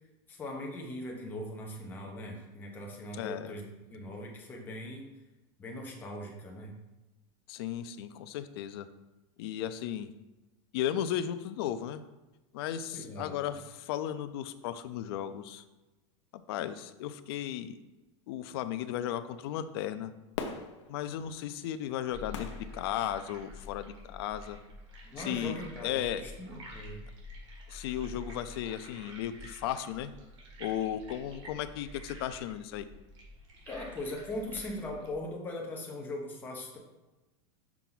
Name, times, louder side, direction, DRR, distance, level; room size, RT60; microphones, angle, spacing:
voice 1, 0.3-5.1 5.6-6.7 12.9-13.6 25.1-27.0 33.7-36.8, left 1 dB, 10° left, -1 dB, 0.9 m, -40 dB
voice 2, 3.1-3.5 7.5-8.9 9.4-10.1 10.7-12.0 12.5-15.6 16.5-17.8 18.3-20.1 20.9-22.5 22.7-24.6 25.2-26.2 27.7-30.1 30.6-32.9, left 11 dB, 55° left, 11 dB, 0.4 m, -35 dB
Fireworks, 20.3-23.7 24.2-24.3, left 6 dB, 70° left, 0.9 m, -43 dB
sound 1, 22.1-35.1, left 1 dB, 75° right, 1.9 m, -48 dB
6.0 x 4.5 x 3.9 m, 1.1 s
supercardioid pair, 170°, 16 cm